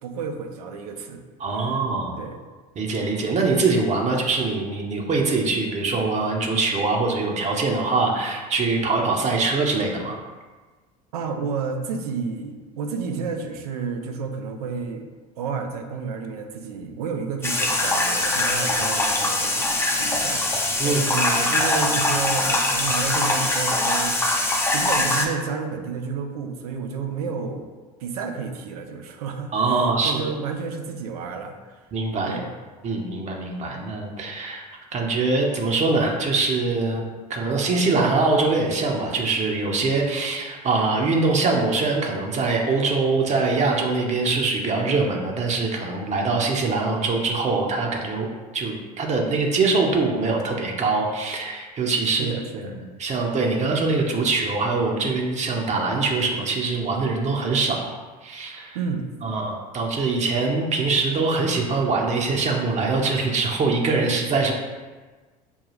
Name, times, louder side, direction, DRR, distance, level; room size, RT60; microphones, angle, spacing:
voice 1, 0.0-1.2 1.6-1.7 2.2-2.4 11.1-15.1 15.4-20.5 20.8-24.2 24.7-27.7 28.0-31.6 32.3-32.5 52.1-52.8 58.7-59.1, right 5 dB, 85° right, 5 dB, 0.5 m, -31 dB
voice 2, 1.4-2.2 2.8-10.2 20.8-21.0 29.5-30.3 31.9-32.4 32.8-34.6 34.9-37.0 37.3-48.3 48.5-57.8 58.2-58.8 59.2-64.5, right 3 dB, 40° right, 0 dB, 0.8 m, -23 dB
sound 1, 17.4-25.3, left 2 dB, 15° left, 0.6 m, -22 dB
5.3 x 2.3 x 3.1 m, 1.3 s
hypercardioid pair, 75°, 19 cm